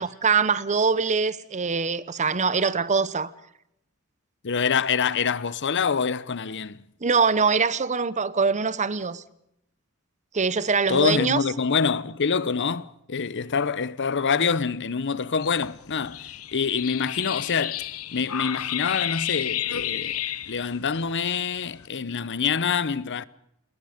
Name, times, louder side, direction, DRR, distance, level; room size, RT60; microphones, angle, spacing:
voice 1, 0.0-3.3 7.0-9.2 10.3-11.4, right 5 dB, 35° right, 0.8 m, -23 dB
voice 2, 4.4-6.8 10.9-16.2 16.5-17.8 18.1-20.2 20.5-23.2, left 6 dB, 55° left, 0.8 m, -26 dB
sound 1, 15.4-21.9, left 11 dB, 80° left, 1.0 m, -32 dB
28.5 x 20.5 x 5.1 m
head